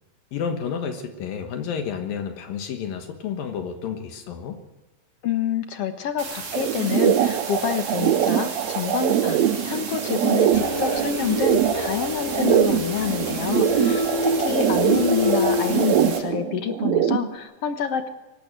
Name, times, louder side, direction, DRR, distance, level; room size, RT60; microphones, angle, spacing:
voice 1, 0.3-4.6, left 7 dB, 75° left, 5 dB, 3.1 m, -30 dB
voice 2, 5.2-18.1, left 9 dB, 60° left, 8 dB, 1.8 m, -27 dB
sound 1, 6.2-16.2, right 5 dB, 60° right, 4.3 m, -35 dB
sound 2, 6.5-17.3, right 11 dB, 75° right, 1.7 m, -23 dB
sound 3, 10.5-16.1, left 2 dB, 15° left, 0.9 m, -27 dB
24.0 x 12.0 x 8.9 m, 1.1 s
omnidirectional pair, 4.1 m